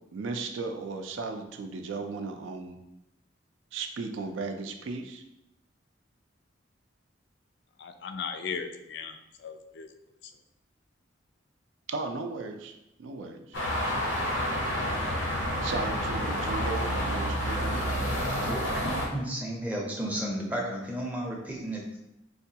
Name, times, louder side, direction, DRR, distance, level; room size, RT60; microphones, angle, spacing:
voice 1, 0.1-2.8 3.7-5.2 11.9-13.6 15.6-17.8, right 4 dB, 75° right, 5 dB, 0.4 m, -36 dB
voice 2, 7.8-9.9, left 6 dB, 60° left, 7 dB, 0.3 m, -37 dB
sound 1, 13.5-19.1, equal, 85° left, 0.7 m, -29 dB
voice 3, 18.4-22.0, right 1 dB, 10° right, -2 dB, 0.5 m, -33 dB
4.7 x 2.2 x 2.7 m, 0.87 s
head